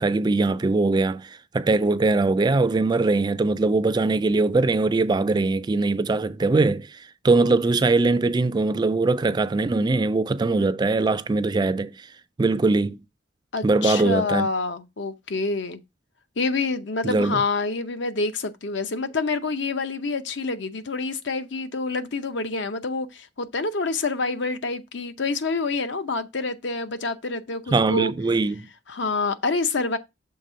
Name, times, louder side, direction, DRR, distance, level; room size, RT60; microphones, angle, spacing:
voice 1, 0.0-12.1 12.4-13.0 13.6-14.5 17.0-17.4 27.7-28.7, right 3 dB, 20° right, 0.3 m, -21 dB
voice 2, 13.5-15.8 16.4-28.1 28.9-30.0, left 3 dB, 65° left, 0.7 m, -27 dB
6.6 x 3.5 x 5.5 m
head